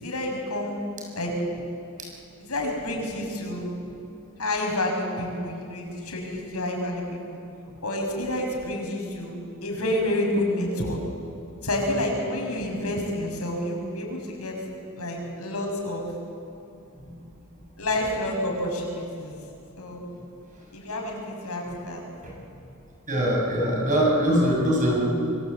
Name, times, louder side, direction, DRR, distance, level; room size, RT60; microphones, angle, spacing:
voice 1, 0.0-0.8 1.2-1.3 2.4-3.7 4.4-7.4 7.8-9.4 9.6-11.0 11.6-14.5 15.0-16.1 17.8-19.4 19.8-20.0 20.7-22.0, left 1 dB, 85° left, 1 dB, 6.5 m, -29 dB
voice 2, 23.1-25.0, equal, 35° right, -1 dB, 7.2 m, -22 dB
26.5 x 24.0 x 8.4 m, 2.6 s
head